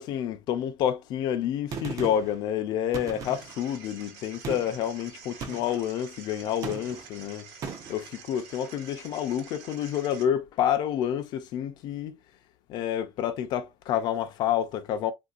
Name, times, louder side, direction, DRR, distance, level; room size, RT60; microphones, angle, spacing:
voice 1, 0.0-7.5 7.9-12.2 12.7-15.1, left 10 dB, 45° left, 0.5 m, -29 dB
Gunshot gunfire, 1.7-2.4 2.9-3.7 4.4-4.8 5.4-5.9 6.6-7.1 7.6-8.0, right 5 dB, 35° right, 0.5 m, -37 dB
sound 1, 3.2-10.2, right 6 dB, 85° right, 1.1 m, -48 dB
3.6 x 2.6 x 2.3 m
cardioid pair, 170°, 10 cm